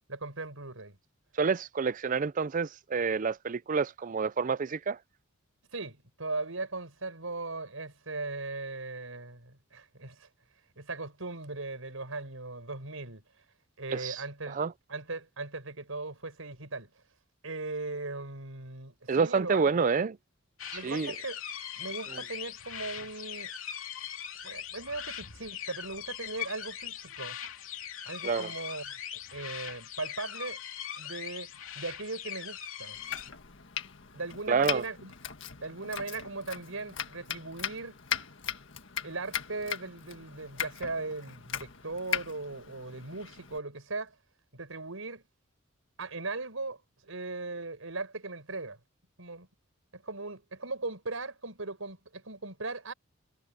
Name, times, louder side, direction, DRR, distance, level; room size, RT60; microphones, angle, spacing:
voice 1, 0.1-1.0 5.7-10.3 10.8-13.2 13.8-14.6 14.9-16.9 17.4-19.9 20.7-21.4 21.8-23.5 24.4-27.4 28.0-29.0 29.3-30.6 31.0-31.5 31.7-33.0 34.1-35.1 35.6-38.0 39.0-44.1 44.5-45.2 46.0-46.8 47.0-48.8 49.2-49.5 49.9-52.9, right 3 dB, 80° right, 5.0 m, -38 dB
voice 2, 1.4-5.0 13.9-14.2 14.5-14.7 19.1-20.2 20.8-21.1 28.2-28.5 34.5-34.8, right 5 dB, 40° right, 0.4 m, -28 dB
sound 1, 20.6-33.3, left 9 dB, 75° left, 2.6 m, -41 dB
Domestic sounds home sounds, 32.9-43.6, left 8 dB, 60° left, 1.7 m, -39 dB
head